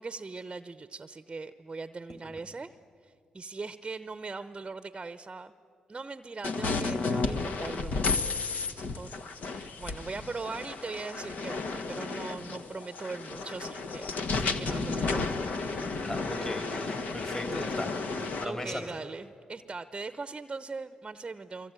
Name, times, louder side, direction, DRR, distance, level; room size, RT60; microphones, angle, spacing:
voice 1, 0.0-2.7 3.0-5.5 5.9-14.1 14.3-15.3 15.6-15.9 18.4-21.7, right 4 dB, 30° right, 12 dB, 0.8 m, -40 dB
sound 1, 6.4-18.4, left 3 dB, 60° left, 1.5 m, -32 dB
voice 2, 16.0-19.0, left 1 dB, 20° left, 4 dB, 3.7 m, -38 dB
24.5 x 24.0 x 9.0 m, 2.4 s
hypercardioid pair, 50°, 3 cm